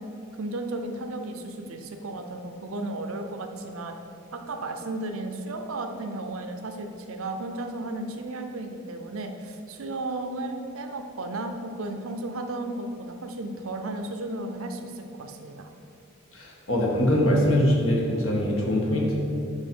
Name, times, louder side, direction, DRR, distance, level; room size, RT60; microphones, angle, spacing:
voice 1, 0.4-3.9 4.3-15.7, right 2 dB, 75° right, 5 dB, 0.6 m, -34 dB
voice 2, 16.3-19.2, equal, 70° left, -2 dB, 1.3 m, -23 dB
5.4 x 4.8 x 5.4 m, 2.6 s
head